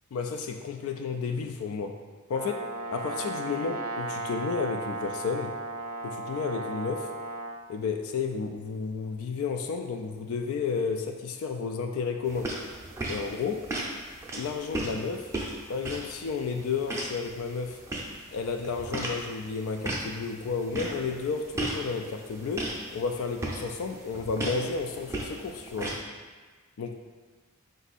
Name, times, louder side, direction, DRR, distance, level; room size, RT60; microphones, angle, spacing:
voice 1, 0.1-2.0 2.3-5.6 6.0-7.1 7.7-12.6 13.1-13.7 14.3-15.3 15.7-17.8 18.3-26.0 26.8-27.0, left 5 dB, 65° left, 4 dB, 0.3 m, -32 dB
Brass instrument, 2.3-7.6, right 2 dB, 70° right, 0.5 m, -35 dB
sound 1, 12.3-26.0, right 1 dB, 15° right, 0.5 m, -37 dB
4.5 x 2.6 x 4.0 m, 1.4 s
head